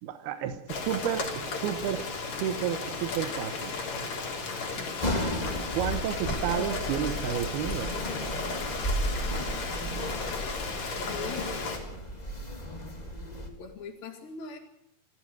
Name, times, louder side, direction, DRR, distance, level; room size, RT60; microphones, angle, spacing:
voice 1, 0.0-3.7 5.7-7.9, right 10 dB, 85° right, 9 dB, 3.1 m, -31 dB
Rain, 0.7-11.8, left 4 dB, 50° left, 4.5 m, -35 dB
voice 2, 4.8-5.1 11.1-11.5 13.6-14.6, left 5 dB, 65° left, -2 dB, 4.1 m, -41 dB
sound 1, 5.0-13.5, equal, 10° left, 2.6 m, -34 dB
sound 2, 6.0-11.9, left 6 dB, 30° left, 6.4 m, -50 dB
26.5 x 15.0 x 8.0 m, 0.80 s
omnidirectional pair, 4.4 m